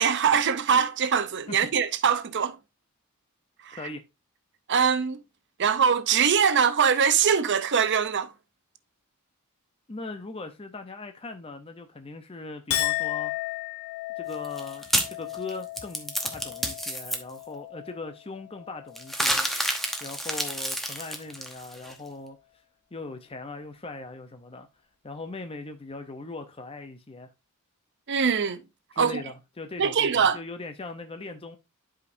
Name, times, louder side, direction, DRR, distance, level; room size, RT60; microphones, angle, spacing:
voice 1, 0.0-2.6 3.7-3.8 4.7-5.2 5.6-8.3 28.1-28.6 29.0-29.2 29.8-30.4, right 7 dB, 55° right, 0.7 m, -22 dB
voice 2, 9.9-13.3 14.2-19.5 20.0-22.4 22.9-24.7 25.0-27.3 28.9-31.6, left 3 dB, 25° left, 0.7 m, -40 dB
Chink clink, 12.7-19.3 19.6-20.2, left 15 dB, 80° left, 0.8 m, -35 dB
sound 1, 14.3-17.2 19.0-21.9, equal, ahead, 0.9 m, -29 dB
11.0 x 5.1 x 2.6 m
head